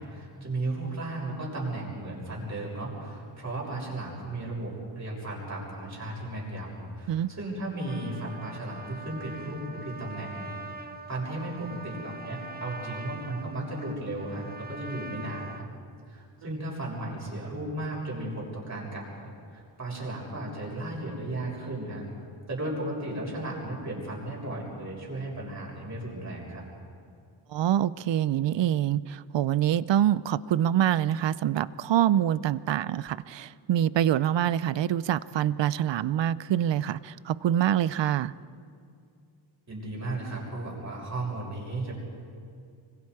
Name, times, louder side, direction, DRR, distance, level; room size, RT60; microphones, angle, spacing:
voice 1, 0.0-10.5 11.1-15.7 16.1-22.1 22.5-26.6 39.7-42.0, right 2 dB, 35° right, -3 dB, 7.0 m, -35 dB
Trumpet, 7.7-15.7, right 2 dB, 20° right, 1.1 m, -43 dB
voice 2, 27.5-38.3, right 11 dB, 65° right, 18 dB, 0.6 m, -25 dB
25.0 x 25.0 x 4.8 m, 2.4 s
wide cardioid pair, 135°, 48 cm